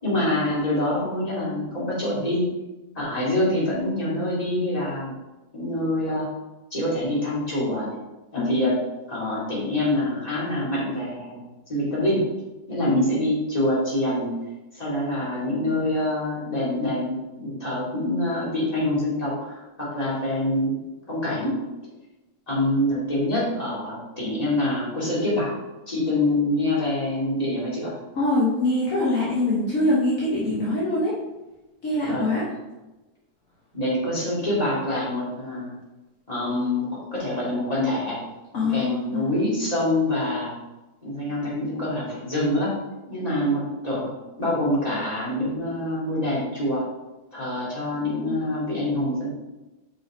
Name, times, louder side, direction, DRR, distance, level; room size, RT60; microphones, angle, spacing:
voice 1, 0.0-2.5 2.9-5.1 5.5-6.3 6.7-8.0 8.3-8.8 9.1-12.3 12.7-14.3 14.7-20.8 21.1-21.6 22.5-25.5 25.9-28.0 32.1-32.4 33.7-35.7 36.3-38.2 38.6-40.5 41.0-42.7 43.1-44.1 44.4-46.8 47.3-49.3, left 1 dB, 25° left, -7 dB, 2.5 m, -25 dB
voice 2, 28.1-31.1 31.8-32.4 38.5-39.2, left 2 dB, 55° left, -7 dB, 1.7 m, -23 dB
5.4 x 5.1 x 4.3 m, 1.1 s
omnidirectional pair, 1.7 m